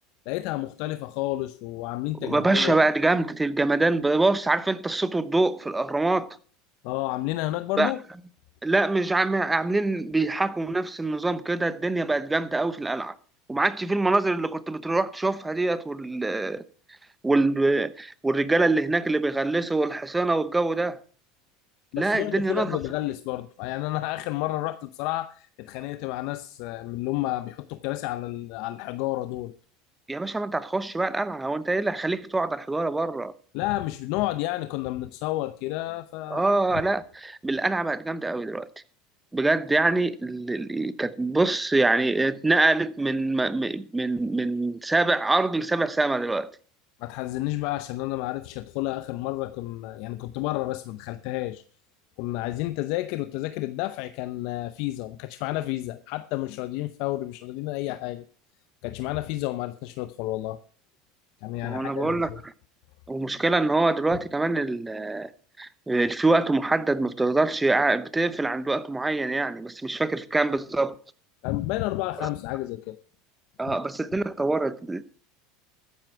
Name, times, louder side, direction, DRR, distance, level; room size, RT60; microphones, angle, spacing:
voice 1, 0.3-2.8 6.8-8.0 21.9-29.5 33.5-36.5 47.0-51.6 52.2-58.2 58.8-60.6 61.4-62.2 71.4-73.0 73.7-73.8, left 17 dB, 65° left, 0.7 m, -31 dB
voice 2, 2.2-6.3 7.8-7.9 8.6-13.2 13.5-16.6 17.2-21.0 22.0-22.8 30.1-33.3 36.3-38.7 39.3-46.5 61.6-62.3 63.1-65.3 65.6-70.9 72.2-72.3 73.6-75.2, right 2 dB, 10° right, 0.8 m, -24 dB
13.5 x 10.0 x 4.6 m
supercardioid pair, 120°, 0 cm